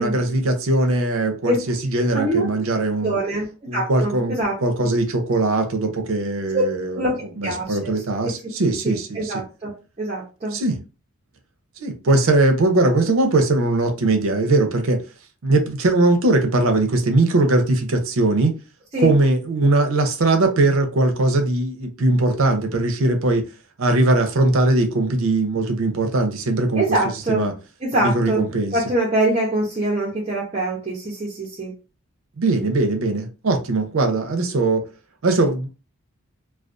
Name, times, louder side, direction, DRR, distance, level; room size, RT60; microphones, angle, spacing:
voice 1, 0.0-3.2 3.7-4.4 4.6-7.0 7.4-9.3 10.5-10.8 11.8-15.0 15.4-18.5 19.0-23.4 23.8-27.0 27.3-27.5 27.9-28.8 32.4-34.8 35.2-35.7, right 2 dB, 70° right, 0.6 m, -20 dB
voice 2, 2.1-2.6 3.0-3.5 3.7-4.5 6.5-6.6 6.9-8.0 8.8-9.7 10.0-10.6 18.9-19.1 26.8-27.4 27.8-31.7, right 1 dB, 30° right, 0.6 m, -24 dB
2.4 x 2.2 x 2.4 m
head